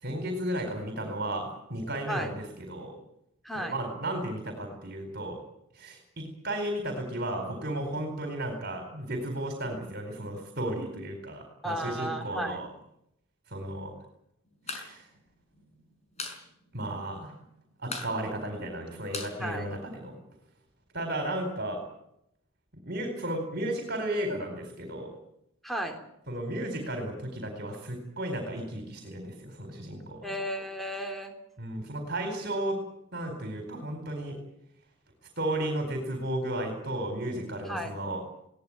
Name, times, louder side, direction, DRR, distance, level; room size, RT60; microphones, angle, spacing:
voice 1, 0.0-2.9 3.5-5.4 5.7-12.7 13.5-13.9 14.7-15.1 16.7-17.3 17.8-20.2 20.9-21.8 22.9-25.1 26.3-30.2 31.6-32.8 33.1-34.4 35.4-38.2, right 1 dB, 50° right, 4 dB, 4.4 m, -34 dB
voice 2, 11.6-12.6 19.4-19.7 25.6-26.0 30.2-31.3 37.7-37.9, equal, ahead, 4 dB, 3.6 m, -34 dB
sound 1, 14.5-14.9 15.2-15.3 15.6-16.4 16.7-16.8 17.1-17.5 17.8-20.2, left 4 dB, 30° left, 5.4 m, -39 dB
21.5 x 18.0 x 9.0 m, 0.78 s
head